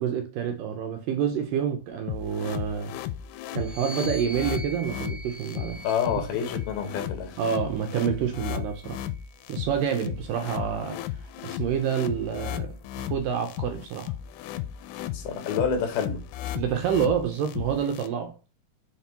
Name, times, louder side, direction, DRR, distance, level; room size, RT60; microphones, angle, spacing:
voice 1, 0.0-2.9 3.5-5.8 7.4-9.0 9.5-11.0 11.4-14.1 16.6-18.4, right 8 dB, 80° right, 2.1 m, -28 dB
sound 1, 2.1-18.1, left 12 dB, 90° left, 2.6 m, -35 dB
sound 2, 3.5-7.1 7.9-9.5, equal, 10° left, 2.2 m, -43 dB
voice 2, 5.8-7.4 15.1-16.2, left 7 dB, 70° left, 3.2 m, -28 dB
7.2 x 3.7 x 4.4 m
omnidirectional pair, 4.6 m